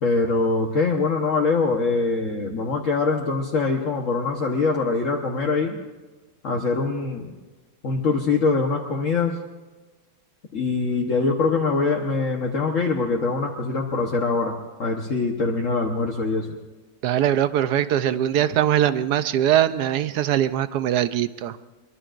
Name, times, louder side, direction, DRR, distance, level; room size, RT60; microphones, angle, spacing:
voice 1, 0.0-5.8 6.4-7.3 7.8-9.4 10.5-16.6, left 4 dB, 55° left, -1 dB, 1.5 m, -23 dB
voice 2, 17.0-21.6, right 11 dB, 85° right, 12 dB, 1.3 m, -21 dB
23.5 x 23.0 x 2.6 m, 1.2 s
omnidirectional pair, 1.7 m